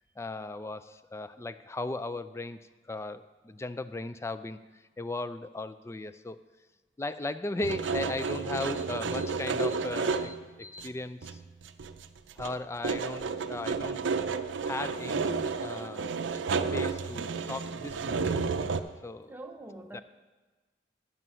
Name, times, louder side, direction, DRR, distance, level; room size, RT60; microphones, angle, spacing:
voice 1, 0.2-2.6 2.9-6.4 7.0-11.4 12.4-14.0 14.6-16.1 16.7-18.3 19.0-19.3 19.9-20.0, left 2 dB, 15° left, 13 dB, 0.3 m, -37 dB
sound 1, 7.6-10.4 10.8-10.9 11.2-12.1 12.3-18.8, right 5 dB, 85° right, 0.5 m, -31 dB
voice 2, 19.3-20.0, right 2 dB, 10° right, 5 dB, 0.7 m, -44 dB
9.9 x 7.6 x 5.5 m, 1.3 s
head